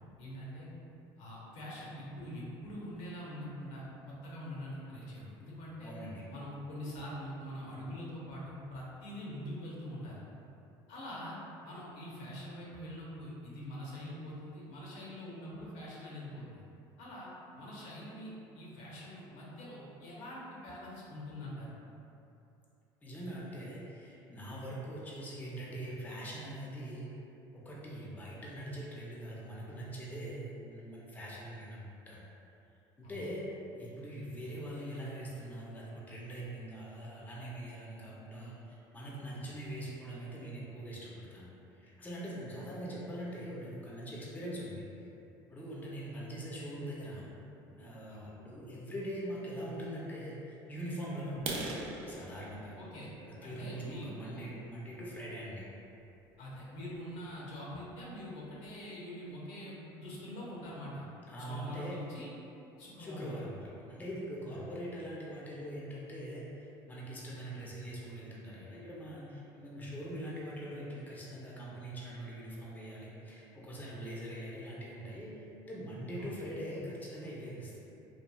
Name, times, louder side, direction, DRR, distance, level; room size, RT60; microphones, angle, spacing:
voice 1, 0.2-0.7 1.2-5.9 6.3-10.2 10.9-11.4 11.6-16.6 17.0-17.3 17.6-21.7 33.0-33.3 39.3-39.4 48.1-48.3 52.8-53.1 53.4-54.5 56.4-61.0 61.4-62.3 62.8-63.4 64.5-64.7 76.2-76.4, equal, 75° left, -6 dB, 0.7 m, -44 dB
voice 2, 5.8-6.3 23.0-27.1 27.5-32.2 33.0-33.5 33.7-41.5 41.8-44.8 45.5-47.3 47.7-51.7 52.1-52.7 53.4-55.7 61.3-62.0 63.0-66.5 66.9-77.8, right 1 dB, 15° left, -6 dB, 0.5 m, -42 dB
sound 1, 51.3-55.1 55.6-55.8 56.3-56.4 56.8-57.0 57.3-57.4 57.8-57.9 58.2-58.7, right 3 dB, 60° right, 0.4 m, -42 dB
3.0 x 2.3 x 2.2 m, 2.8 s
supercardioid pair, 95°, 11 cm